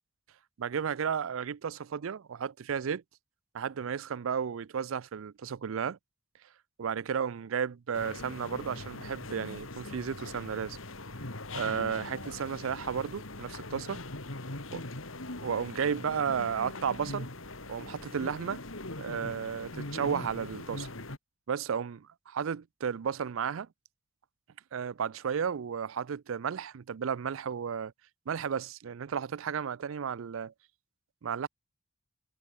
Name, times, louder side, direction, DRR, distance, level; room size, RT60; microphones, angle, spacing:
voice 1, 0.6-3.0 3.5-6.0 6.8-10.8 11.5-14.0 14.7-14.8 15.4-17.3 17.7-18.6 19.0-20.9 21.5-23.7 24.7-27.9 28.3-30.5 31.2-31.5, right 7 dB, 85° right, 0.4 m, -33 dB
sound 1, 7.9-21.2, left 2 dB, 85° left, 3.1 m, -41 dB
head